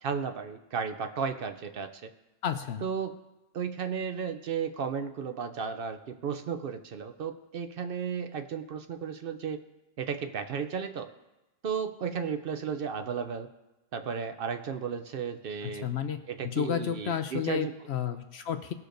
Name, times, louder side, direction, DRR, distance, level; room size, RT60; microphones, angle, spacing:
voice 1, 0.0-2.1 2.8-3.1 3.5-9.6 10.0-11.1 11.6-13.5 13.9-15.9 16.3-17.7, right 6 dB, 60° right, 8 dB, 0.6 m, -34 dB
voice 2, 2.4-2.9 15.6-18.7, left 9 dB, 65° left, 8 dB, 0.8 m, -32 dB
19.0 x 6.6 x 2.6 m, 1.0 s
omnidirectional pair, 1.3 m